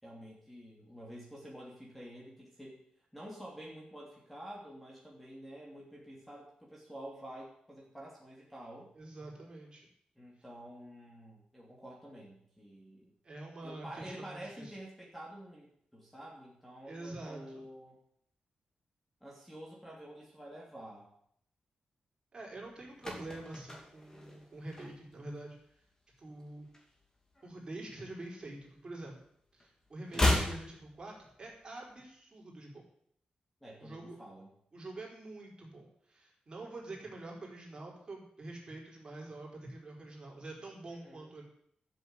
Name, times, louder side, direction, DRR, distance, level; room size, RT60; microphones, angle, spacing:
voice 1, 0.0-2.9 3.1-8.9 10.2-13.1 13.6-18.0 19.2-21.1 33.6-34.5 40.9-41.3, right 1 dB, 5° left, -3 dB, 2.9 m, -49 dB
voice 2, 8.9-9.9 13.2-14.8 16.9-17.6 22.3-25.6 26.2-26.7 27.4-29.1 29.5-32.8 33.8-34.2 34.7-41.4, right 2 dB, 35° right, -2 dB, 4.6 m, -46 dB
sound 1, 22.6-25.3 25.6-25.9 26.2-27.6 27.9-29.3 29.5-31.6 31.9-32.0, left 1 dB, 20° left, 2.8 m, -35 dB
13.0 x 7.3 x 8.1 m, 0.68 s
wide cardioid pair, 140°, 3 cm